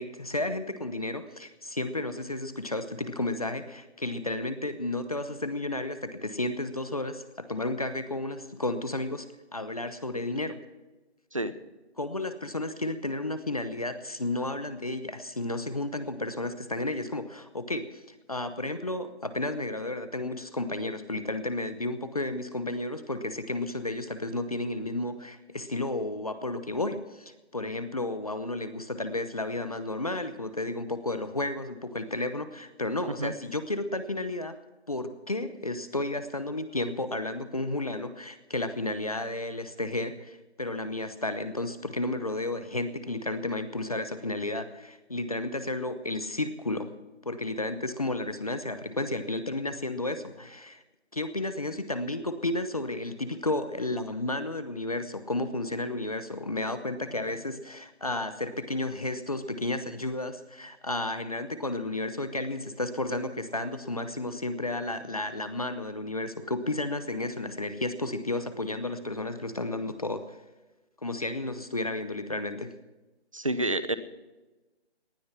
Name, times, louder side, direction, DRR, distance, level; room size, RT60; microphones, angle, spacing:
voice 1, 0.0-9.3 9.5-10.6 12.0-18.0 18.3-34.6 34.9-46.9 47.2-50.8 51.1-70.4 71.0-72.8, left 2 dB, 35° left, 11 dB, 0.9 m, -32 dB
voice 2, 73.3-74.0, right 1 dB, 30° right, 14 dB, 0.8 m, -28 dB
19.0 x 11.5 x 5.8 m, 1.1 s
hypercardioid pair, 180°, 33 cm